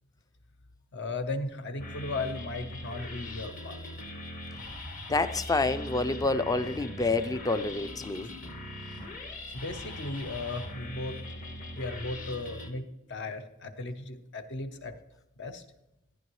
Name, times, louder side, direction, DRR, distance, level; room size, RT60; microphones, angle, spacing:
voice 1, 0.9-3.9 8.2-8.3 9.5-11.2 11.8-15.0 15.4-15.6, left 2 dB, 55° left, 9 dB, 0.8 m, -36 dB
sound 1, 1.8-12.7, left 1 dB, 40° left, 1.3 m, -41 dB
voice 2, 5.1-8.3, left 3 dB, 15° left, 12 dB, 0.4 m, -28 dB
14.0 x 9.7 x 3.1 m, 0.89 s
head